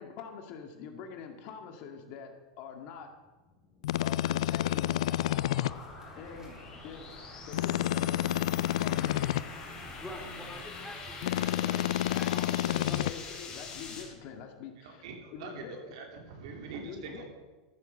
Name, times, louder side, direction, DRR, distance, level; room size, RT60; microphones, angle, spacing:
voice 1, 0.0-3.1 4.0-5.1 6.2-7.2 7.5-8.2 8.8-9.2 12.1-15.1 15.3-15.8 16.8-17.2, left 6 dB, 55° left, 5 dB, 1.9 m, -45 dB
sound 1, 3.5-14.0, left 5 dB, 30° left, 3.7 m, -46 dB
sound 2, 3.8-5.7 7.5-9.4 11.2-13.1, left 14 dB, 75° left, 0.4 m, -29 dB
sound 3, 4.5-14.1, equal, 15° right, 3.6 m, -50 dB
voice 2, 9.7-13.0, equal, 5° left, 1 dB, 3.0 m, -46 dB
voice 3, 14.8-17.2, right 5 dB, 70° right, 2 dB, 2.9 m, -44 dB
14.0 x 7.8 x 6.5 m, 1.3 s
hypercardioid pair, 120°, 3 cm